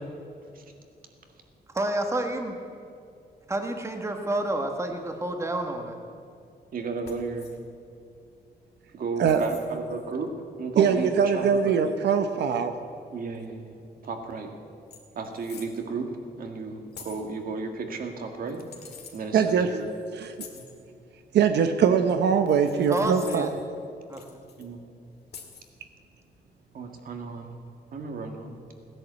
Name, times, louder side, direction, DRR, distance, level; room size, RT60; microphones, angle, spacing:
voice 1, 1.7-2.6 3.5-6.0 22.9-23.5 24.1-24.4, right 1 dB, 15° right, 4 dB, 1.3 m, -29 dB
voice 2, 6.7-7.5 8.9-10.3 10.6-11.8 13.1-13.7 14.0-14.5 15.2-16.1 16.4-18.6 19.1-19.9 20.5-20.6 24.6-24.8 26.7-27.5 27.9-28.6, right 4 dB, 55° right, 4 dB, 1.9 m, -34 dB
sound 1, 7.0-7.6 9.2-9.7 11.7-11.8 14.0-14.1 14.4-14.5 14.9-15.8 16.9-17.3 18.5-19.2 20.3-20.7 22.5-23.6 24.1-24.7 25.3-25.7, left 6 dB, 75° left, 2.2 m, -46 dB
voice 3, 10.8-12.7 19.3-19.7 20.1-20.3 21.3-23.5, right 7 dB, 90° right, 8 dB, 0.9 m, -22 dB
16.5 x 10.5 x 8.2 m, 2.5 s
wide cardioid pair, 155°, 17 cm